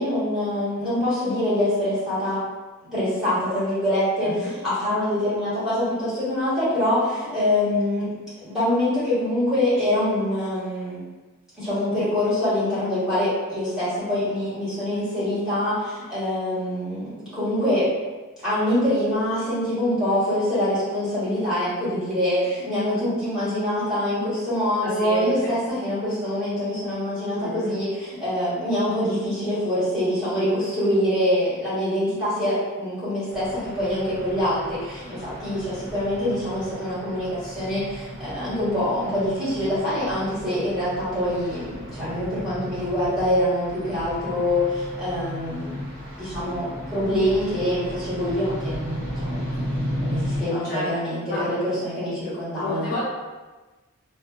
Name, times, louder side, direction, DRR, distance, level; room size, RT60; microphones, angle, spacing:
voice 1, 0.0-2.4 2.9-8.1 8.3-11.0 11.6-17.9 18.4-45.8 46.2-52.9, left 1 dB, 5° right, -14 dB, 1.1 m, -25 dB
voice 2, 4.2-4.5 24.8-25.5 27.4-27.7 50.6-50.9 51.3-51.4 52.6-53.0, left 1 dB, 40° left, -9 dB, 0.5 m, -31 dB
sound 1, 33.3-50.4, equal, 55° right, 0.8 m, -35 dB
2.3 x 2.2 x 2.3 m, 1.2 s
head